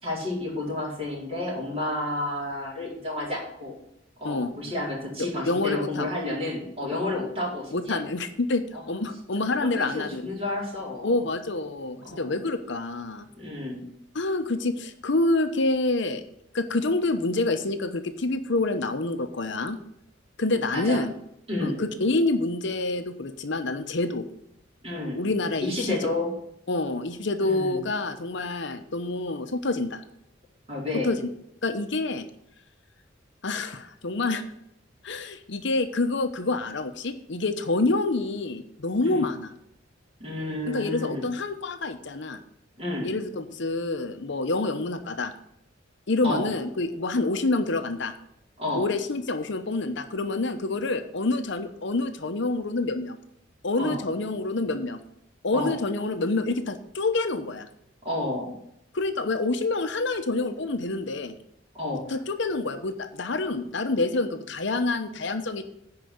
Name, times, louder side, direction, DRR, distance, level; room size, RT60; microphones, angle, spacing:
voice 1, 0.0-3.7 4.2-8.0 8.7-9.0 9.6-11.1 12.0-12.4 13.4-13.8 20.7-21.0 21.5-21.8 24.8-25.3 25.6-26.3 27.4-27.8 30.7-31.1 39.0-39.3 40.2-41.3 42.8-43.1 46.2-46.5 48.6-48.9 53.8-54.0 55.5-55.8 58.0-58.5 61.7-62.2, left 2 dB, 30° right, -4 dB, 4.7 m, -31 dB
voice 2, 5.5-6.1 7.7-10.2 11.0-13.3 14.1-16.2 16.5-19.8 20.4-21.1 21.6-24.2 25.1-26.0 26.7-30.0 31.0-31.3 31.6-32.3 33.4-34.4 35.0-39.5 40.7-42.4 43.0-45.3 46.1-48.1 48.7-53.2 53.6-55.0 55.4-57.7 58.9-61.3 62.1-65.6, left 2 dB, 65° left, 8 dB, 0.9 m, -27 dB
10.5 x 4.9 x 8.0 m, 0.75 s
head